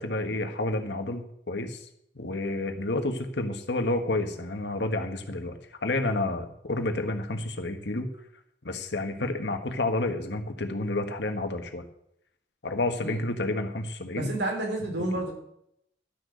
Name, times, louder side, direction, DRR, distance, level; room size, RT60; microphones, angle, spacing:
voice 1, 0.0-1.8 2.1-8.1 8.6-11.8 12.6-14.3, left 2 dB, 80° left, 6 dB, 1.6 m, -30 dB
voice 2, 14.1-15.3, right 1 dB, 80° right, 0 dB, 3.6 m, -30 dB
12.0 x 6.6 x 7.9 m, 0.74 s
head